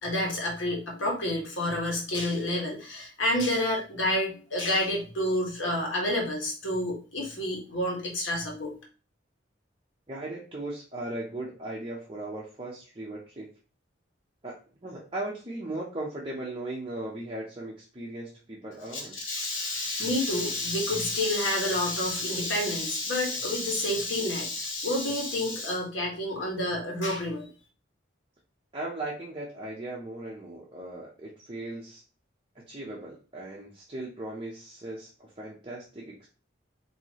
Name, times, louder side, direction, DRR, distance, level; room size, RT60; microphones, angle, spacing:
voice 1, 0.0-8.8 18.9-27.5, left 1 dB, 80° left, -2 dB, 1.4 m, -29 dB
voice 2, 10.1-13.5 14.4-19.2 28.7-32.0 32.5-36.3, right 2 dB, 25° right, -4 dB, 0.7 m, -38 dB
4.5 x 2.8 x 2.9 m, 0.37 s
head